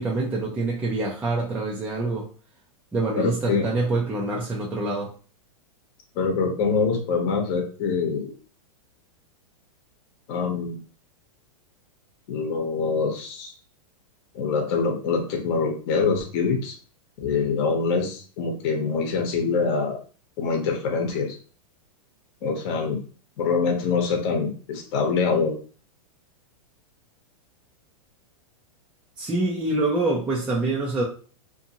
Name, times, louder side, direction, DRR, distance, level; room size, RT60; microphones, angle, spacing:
voice 1, 0.0-2.3 2.9-5.1 29.2-31.0, right 2 dB, 5° right, -4 dB, 0.3 m, -25 dB
voice 2, 3.2-3.7 6.1-8.3 10.3-10.8 12.3-13.5 14.3-16.7 17.2-20.0 20.4-21.4 22.4-23.0 23.4-25.5, left 5 dB, 40° left, 2 dB, 0.8 m, -24 dB
2.5 x 2.5 x 2.8 m, 0.39 s
hypercardioid pair, 145°, 18 cm